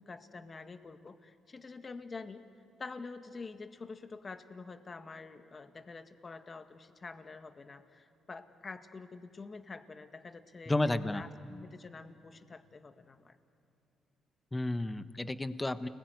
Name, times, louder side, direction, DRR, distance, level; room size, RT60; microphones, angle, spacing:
voice 1, 0.0-2.4 2.8-13.4, left 4 dB, 35° left, 8 dB, 1.8 m, -47 dB
voice 2, 10.7-11.2 14.5-15.9, left 2 dB, 15° left, 11 dB, 1.2 m, -32 dB
30.0 x 21.0 x 9.5 m, 2.8 s
cardioid pair, 90°, 0 cm